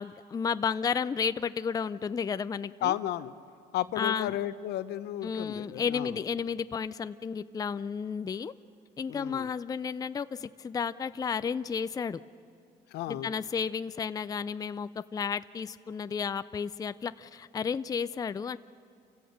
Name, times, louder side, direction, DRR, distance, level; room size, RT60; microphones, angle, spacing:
voice 1, 0.0-3.0 4.0-4.4 5.2-8.5 9.0-12.2 13.1-18.6, left 6 dB, 20° left, 13 dB, 0.4 m, -32 dB
voice 2, 2.8-3.3 3.7-6.2 9.1-9.5 12.9-13.3, left 12 dB, 80° left, 13 dB, 0.8 m, -33 dB
28.0 x 16.5 x 6.5 m, 2.6 s
cardioid pair, 110°, 17 cm